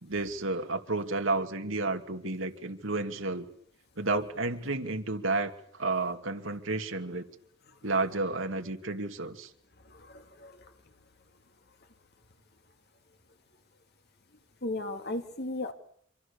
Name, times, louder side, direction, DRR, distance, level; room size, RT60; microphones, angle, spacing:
voice 1, 0.0-3.5 4.0-7.3 7.8-9.5, right 3 dB, 80° right, 5 dB, 2.5 m, -31 dB
voice 2, 9.8-10.7 14.6-15.7, left 2 dB, 55° left, 6 dB, 2.5 m, -36 dB
26.5 x 25.5 x 7.1 m, 0.66 s
head